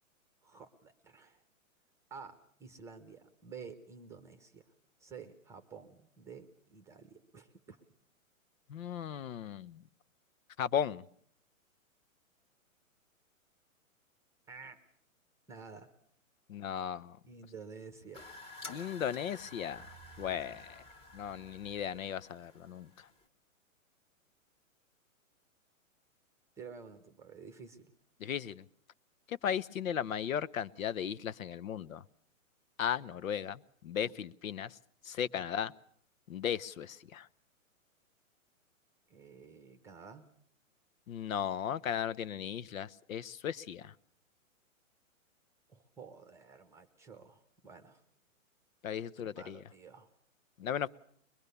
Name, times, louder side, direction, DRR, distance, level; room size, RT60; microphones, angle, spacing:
voice 1, 0.4-1.4 2.1-4.7 5.0-7.8 14.5-14.8 15.5-15.9 17.3-18.3 20.2-20.4 26.6-28.0 34.0-34.2 35.3-35.5 39.1-40.3 45.7-48.0 49.3-50.1, right 5 dB, 5° right, 0.9 m, -51 dB
voice 2, 8.7-9.8 10.6-11.0 16.5-17.2 18.7-19.9 20.2-20.8 21.1-23.1 28.2-28.6 29.3-32.0 32.8-34.8 35.0-35.7 36.3-37.3 41.1-43.9 48.8-49.6 50.6-50.9, left 9 dB, 75° left, 1.0 m, -36 dB
sound 1, 18.1-23.2, left 2 dB, 15° left, 1.4 m, -51 dB
22.5 x 21.5 x 6.9 m
hypercardioid pair, 150°, 41 cm